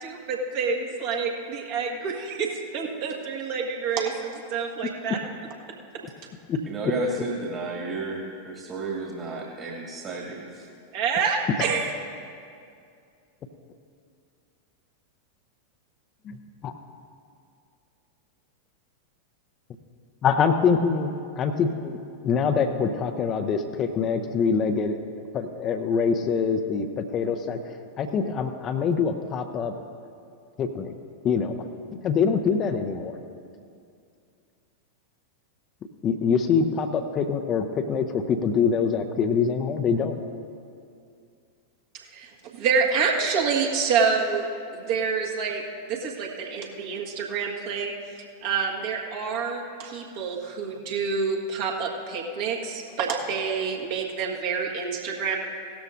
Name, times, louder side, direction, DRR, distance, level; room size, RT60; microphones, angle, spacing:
voice 1, 0.0-5.2 5.9-6.0 10.9-11.9 42.1-44.4 44.7-45.6 45.9-47.9 48.4-55.4, right 5 dB, 50° right, 0 dB, 1.5 m, -27 dB
voice 2, 6.7-10.7, right 2 dB, 30° right, -2 dB, 1.9 m, -32 dB
voice 3, 20.2-25.0 25.3-29.7 30.6-30.9 31.2-31.7 32.0-33.2 36.0-40.2, left 6 dB, 30° left, 7 dB, 0.7 m, -24 dB
17.0 x 13.0 x 2.6 m, 2.4 s
figure-of-eight pair, 90°, 0 cm